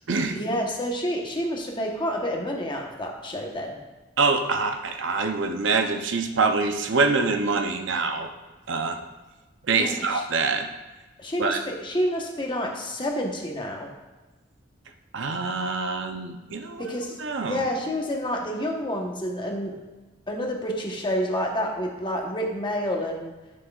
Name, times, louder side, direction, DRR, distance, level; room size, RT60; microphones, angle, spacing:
voice 1, 0.3-3.8 9.7-10.2 11.2-13.9 16.8-17.1 17.5-19.8 20.3-23.3, equal, 25° left, 0 dB, 1.1 m, -29 dB
voice 2, 4.2-8.3 8.7-9.0 9.7-10.7 11.4-11.6 15.1-16.9 17.2-17.6, right 4 dB, 70° right, 6 dB, 0.6 m, -25 dB
11.0 x 6.2 x 2.4 m, 1.2 s
head